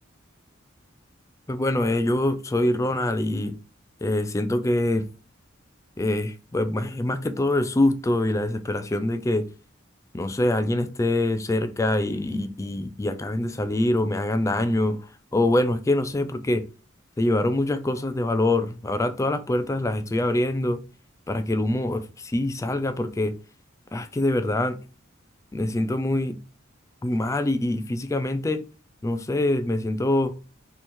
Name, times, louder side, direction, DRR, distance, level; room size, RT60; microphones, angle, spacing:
voice 1, 1.5-3.5 4.0-5.1 6.0-9.5 10.1-16.6 17.2-20.8 21.3-23.4 23.9-24.8 25.5-26.4 27.0-28.6 29.0-30.3, left 1 dB, 15° left, 0.3 m, -24 dB
3.4 x 3.0 x 4.3 m
head